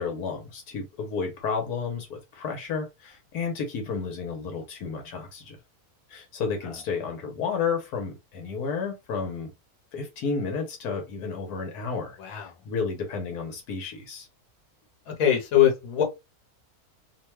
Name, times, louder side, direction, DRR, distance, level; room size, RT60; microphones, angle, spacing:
voice 1, 0.0-5.6 6.1-9.5 9.9-14.3, left 5 dB, 90° left, 1.4 m, -32 dB
voice 2, 12.2-12.5 15.1-16.0, left 10 dB, 70° left, 1.3 m, -22 dB
3.0 x 2.2 x 3.1 m
omnidirectional pair, 1.6 m